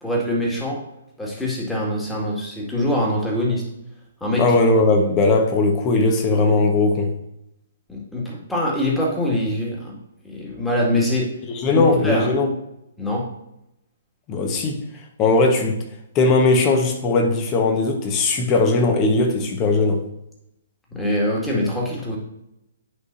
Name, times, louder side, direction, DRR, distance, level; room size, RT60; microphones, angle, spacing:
voice 1, 0.0-0.8 1.2-3.6 4.2-4.4 7.9-10.0 10.2-11.3 11.7-12.3 13.0-13.2 20.9-22.2, left 1 dB, 5° left, -3 dB, 2.0 m, -23 dB
voice 2, 4.4-7.1 11.5-12.5 14.3-14.8 15.2-15.9 16.1-20.0, left 3 dB, 25° left, 3 dB, 1.3 m, -18 dB
9.8 x 5.5 x 2.7 m, 0.84 s
figure-of-eight pair, 125°, 0 cm